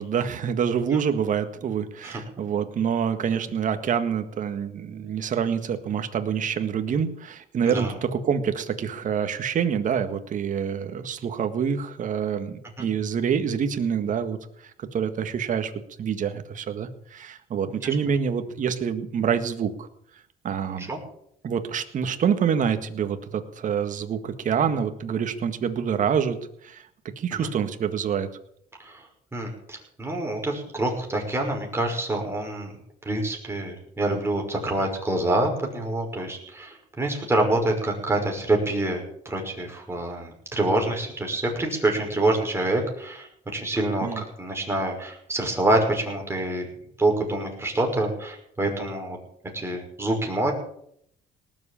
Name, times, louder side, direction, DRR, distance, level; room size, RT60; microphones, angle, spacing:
voice 1, 0.0-14.4 14.6-15.7 16.0-19.9 20.4-20.9 21.4-26.4 26.6-26.8 27.2-28.3 44.0-44.2, right 7 dB, 50° right, 8 dB, 1.8 m, -26 dB
voice 2, 7.7-8.0 12.8-12.9 20.8-21.0 27.3-27.5 28.8-29.1 29.3-32.7 33.0-46.7 47.0-49.2 49.5-50.5, right 2 dB, 15° right, 1 dB, 5.7 m, -26 dB
19.0 x 7.7 x 8.6 m, 0.70 s
cardioid pair, 110°, 17 cm